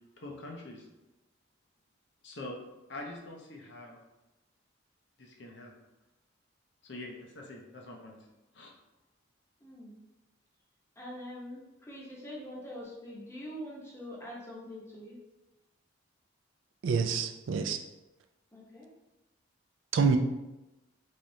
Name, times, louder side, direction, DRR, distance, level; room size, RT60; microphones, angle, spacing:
voice 1, 0.2-0.9 2.2-2.6 2.9-4.0 5.2-5.7 6.8-8.1 8.5-8.7, left 2 dB, 60° left, 0 dB, 0.7 m, -44 dB
voice 2, 9.6-10.0 11.0-15.2 18.5-18.9, equal, 15° left, -4 dB, 0.7 m, -44 dB
voice 3, 16.8-17.8 19.9-20.2, right 5 dB, 70° right, 6 dB, 0.3 m, -27 dB
3.5 x 3.3 x 2.7 m, 1.0 s
head